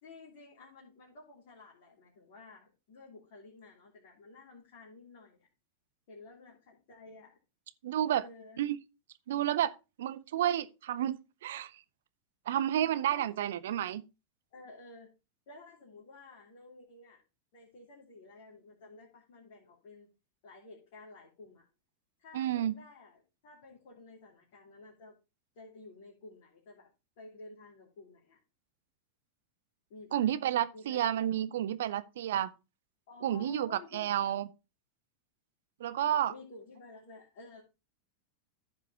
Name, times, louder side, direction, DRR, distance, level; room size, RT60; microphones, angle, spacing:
voice 1, 0.0-5.5 6.1-7.4 8.1-8.6 13.1-13.3 14.5-15.1 15.5-17.2 17.5-20.1 20.4-21.6 22.2-25.1 25.5-26.9 27.2-28.4 29.9-30.3 30.7-31.2 33.1-34.1 36.3-37.6, left 3 dB, 50° left, 3.0 m, -53 dB
voice 2, 7.8-8.2 8.6-8.8 9.3-11.7 12.5-14.0 22.3-22.8 30.1-32.5 33.2-34.5 35.8-36.3, right 11 dB, 60° right, 0.6 m, -31 dB
14.0 x 4.9 x 3.3 m
figure-of-eight pair, 90°, 0 cm